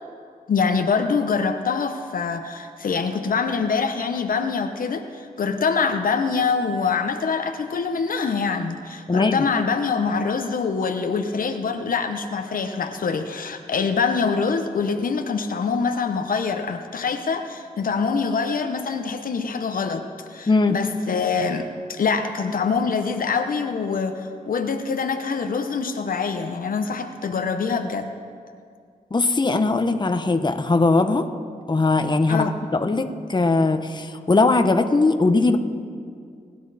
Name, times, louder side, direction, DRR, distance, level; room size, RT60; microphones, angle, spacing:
voice 1, 0.5-28.1 32.3-32.5, left 5 dB, 65° left, 6 dB, 0.9 m, -24 dB
voice 2, 9.1-9.4 20.5-20.8 29.1-31.3 31.7-35.6, left 3 dB, 30° left, 7 dB, 1.0 m, -20 dB
30.0 x 10.5 x 4.2 m, 2.3 s
cardioid pair, 65°, 15 cm